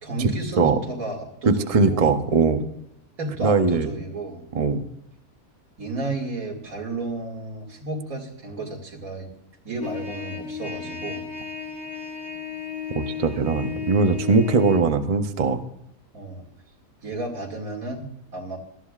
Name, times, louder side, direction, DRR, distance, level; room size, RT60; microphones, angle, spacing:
voice 1, 0.0-2.1 3.2-4.4 5.8-9.3 9.6-11.3 16.1-16.4 17.0-18.1 18.3-18.6, right 2 dB, 75° right, 1 dB, 2.8 m, -32 dB
voice 2, 1.5-2.6 3.4-3.9 4.5-4.9 13.0-15.6, right 4 dB, 35° right, 7 dB, 0.6 m, -20 dB
Trumpet, 9.8-14.8, left 7 dB, 50° left, 1.9 m, -34 dB
18.5 x 13.5 x 2.4 m, 0.82 s
omnidirectional pair, 1.5 m